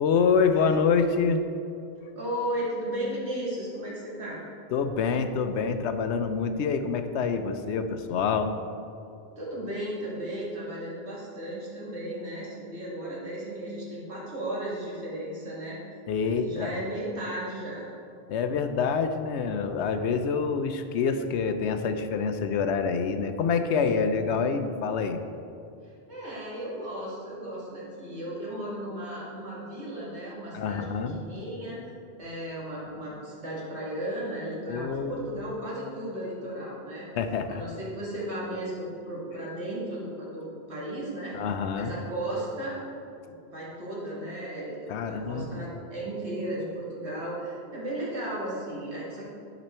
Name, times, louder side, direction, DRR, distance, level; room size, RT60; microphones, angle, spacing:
voice 1, 0.0-1.4 4.7-8.5 16.1-16.8 18.3-25.2 30.5-31.2 34.7-35.4 37.1-37.6 41.3-41.9 44.9-45.7, left 5 dB, 85° left, 8 dB, 0.9 m, -26 dB
voice 2, 2.2-4.4 9.4-15.8 16.4-17.9 26.1-30.9 31.1-31.8 32.2-37.1 37.5-41.4 41.7-42.9 43.2-49.2, right 1 dB, 80° right, -6 dB, 2.3 m, -35 dB
11.0 x 5.2 x 4.3 m, 2.6 s
omnidirectional pair, 1.1 m